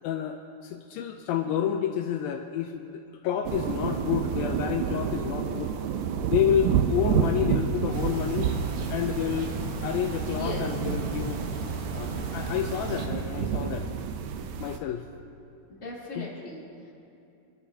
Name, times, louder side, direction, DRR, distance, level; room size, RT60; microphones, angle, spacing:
voice 1, 0.0-5.7 6.3-8.5 8.9-9.5 9.8-11.4 11.9-13.9 14.6-15.1 16.2-16.3, left 9 dB, 80° left, 4 dB, 2.4 m, -29 dB
sound 1, 3.4-14.8, right 7 dB, 85° right, 1.7 m, -30 dB
sound 2, 7.9-13.1, right 4 dB, 65° right, 2.4 m, -34 dB
voice 2, 10.3-10.7 15.7-16.9, left 1 dB, 20° left, -7 dB, 3.4 m, -38 dB
27.0 x 12.0 x 2.8 m, 2.7 s
omnidirectional pair, 4.3 m